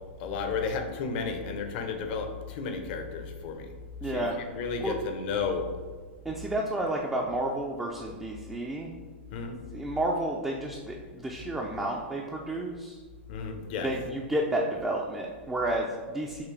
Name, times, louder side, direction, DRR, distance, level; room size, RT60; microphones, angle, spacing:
voice 1, 0.2-3.7 4.1-4.2 4.5-5.7 9.3-9.6 13.3-13.9, left 5 dB, 50° left, 5 dB, 0.7 m, -32 dB
voice 2, 4.0-4.4 4.8-5.0 6.2-8.9 9.7-13.0 13.8-16.4, right 1 dB, 5° right, -1 dB, 0.4 m, -31 dB
5.9 x 2.8 x 3.2 m, 1.5 s
hypercardioid pair, 135°, 7 cm